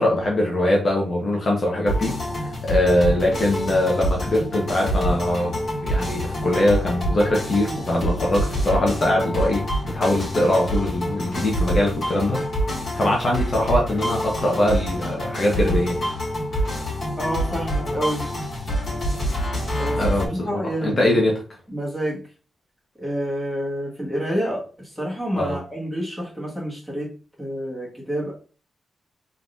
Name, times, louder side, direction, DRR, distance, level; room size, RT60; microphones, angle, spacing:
voice 1, 0.0-12.4 13.0-16.0 20.0-21.4 25.4-25.5, left 1 dB, 35° left, 0.9 m, -22 dB
sound 1, 1.9-20.3, equal, 55° left, 2.0 m, -26 dB
voice 2, 17.2-18.3 19.8-21.2 21.7-22.2 23.0-27.1 27.4-28.3, equal, 5° left, 1.4 m, -28 dB
3.7 x 3.6 x 2.5 m
wide cardioid pair, 155°, 0 cm